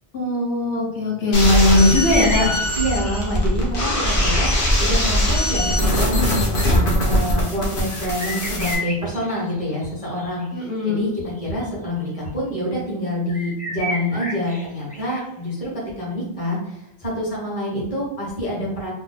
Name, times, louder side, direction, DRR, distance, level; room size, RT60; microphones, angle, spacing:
voice 1, 0.1-2.6 10.5-11.0, left 2 dB, 80° left, -4 dB, 1.2 m, -19 dB
sound 1, 1.3-8.8, equal, 60° left, 1.0 m, -21 dB
sound 2, 1.9-3.3 5.6-5.7 7.9-11.9 12.3-12.4 13.3-15.2, equal, 10° left, 0.4 m, -32 dB
voice 2, 2.7-18.9, equal, 35° left, -6 dB, 1.3 m, -27 dB
3.0 x 2.1 x 3.9 m, 0.90 s
omnidirectional pair, 1.0 m